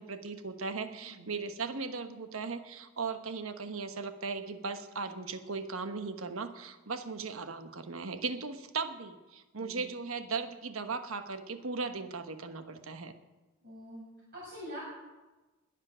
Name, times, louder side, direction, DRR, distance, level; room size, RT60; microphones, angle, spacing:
voice 1, 0.0-13.1, right 4 dB, 85° right, 9 dB, 1.1 m, -37 dB
voice 2, 0.9-1.3 9.6-9.9 13.6-14.0 14.3-14.8, equal, 50° right, -7 dB, 6.1 m, -45 dB
21.0 x 7.5 x 6.2 m, 1.1 s
head